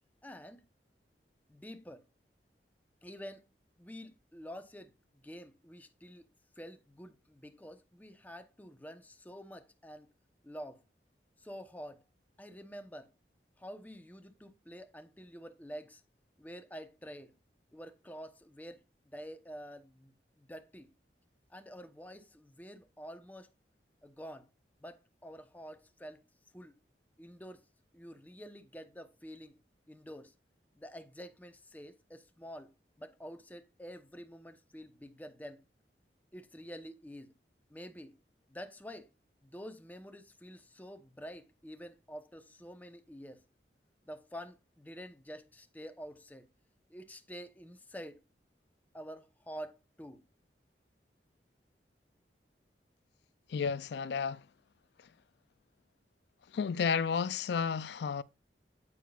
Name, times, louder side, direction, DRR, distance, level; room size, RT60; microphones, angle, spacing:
voice 1, 0.2-0.6 1.5-2.0 3.0-3.4 3.8-6.3 6.6-10.1 10.4-10.8 11.4-12.0 12.4-13.1 13.6-16.0 16.4-17.3 17.7-20.9 21.5-23.5 24.0-24.5 24.8-26.2 26.5-26.7 27.2-27.6 27.9-29.6 29.9-30.3 30.8-35.6 36.3-37.3 37.7-38.2 38.5-39.1 39.4-43.4 44.0-46.5 46.9-48.2 48.9-50.2, equal, 10° left, 0.8 m, -48 dB
voice 2, 53.5-54.4 55.0-55.1 56.5-58.2, left 6 dB, 70° left, 0.4 m, -32 dB
9.1 x 8.6 x 2.4 m
head